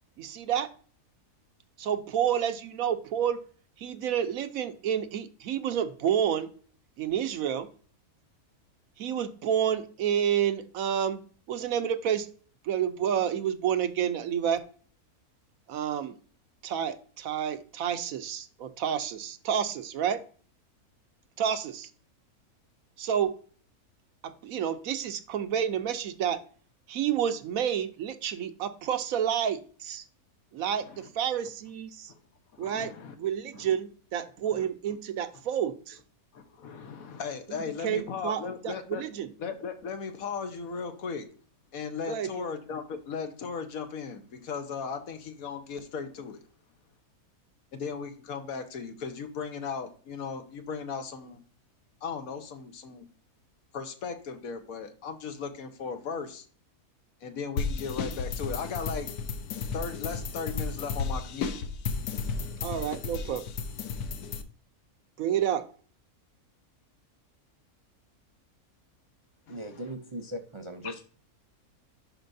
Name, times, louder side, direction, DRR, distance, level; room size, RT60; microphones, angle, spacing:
voice 1, 0.2-0.7 1.8-3.4 3.8-6.5 7.0-7.7 9.0-11.2 11.5-12.3 12.6-14.6 15.7-16.1 16.6-20.2 21.4-21.9 23.0-23.3 24.2-26.4 26.9-30.0 30.5-32.1 32.6-32.9 33.2-36.0 37.8-39.3 42.1-42.3 62.6-63.4 65.2-65.7, right 9 dB, 70° right, 10 dB, 1.0 m, -29 dB
voice 2, 32.5-33.2 33.5-33.7 34.5-34.7 36.3-39.0 39.4-41.3 41.7-46.4 47.7-51.4 52.0-53.1 53.7-56.5 57.2-59.1 59.7-61.5 69.5-69.9 70.8-70.9, left 5 dB, 70° left, 8 dB, 1.3 m, -37 dB
sound 1, 57.6-64.4, left 5 dB, 90° left, 1.3 m, -33 dB
voice 3, 69.5-71.0, equal, 40° right, 4 dB, 0.4 m, -38 dB
11.0 x 4.5 x 2.6 m, 0.43 s
omnidirectional pair, 1.6 m